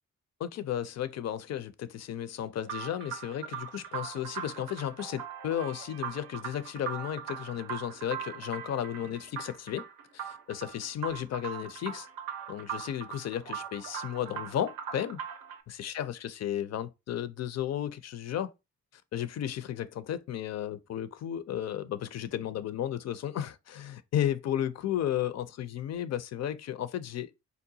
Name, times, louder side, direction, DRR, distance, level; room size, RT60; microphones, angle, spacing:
voice 1, 0.4-9.9 10.1-12.1 12.5-15.2 15.8-18.5 18.9-27.3, left 10 dB, 50° left, 0.4 m, -34 dB
sound 1, 2.6-15.6, right 8 dB, 90° right, 0.5 m, -40 dB
3.8 x 2.2 x 2.7 m
supercardioid pair, 50°, 34 cm